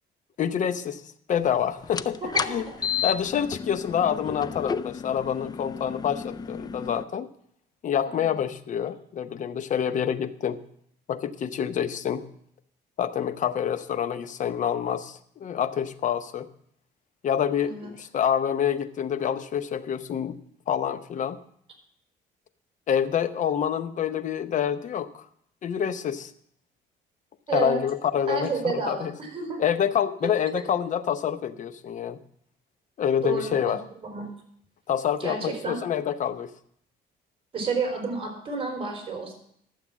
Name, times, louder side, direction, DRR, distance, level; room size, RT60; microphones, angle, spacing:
voice 1, 0.4-1.0 1.3-2.2 2.5-2.7 3.0-7.3 7.8-10.6 11.1-12.2 13.0-16.5 17.2-20.4 20.7-21.4 22.9-25.2 25.6-26.3 27.5-29.2 29.6-32.2 33.0-33.8 34.9-36.5, left 8 dB, 50° left, 11 dB, 0.9 m, -27 dB
sound 1, 1.8-7.0, left 6 dB, 25° left, 0.4 m, -32 dB
voice 2, 2.2-3.1 4.3-4.4 8.0-8.4 17.6-17.9 27.5-27.8 28.3-29.6 30.5-30.6 33.2-34.3 35.2-35.8 37.5-39.3, right 4 dB, 35° right, 3 dB, 4.6 m, -31 dB
12.0 x 7.7 x 7.3 m, 0.66 s
cardioid pair, 110°, 17 cm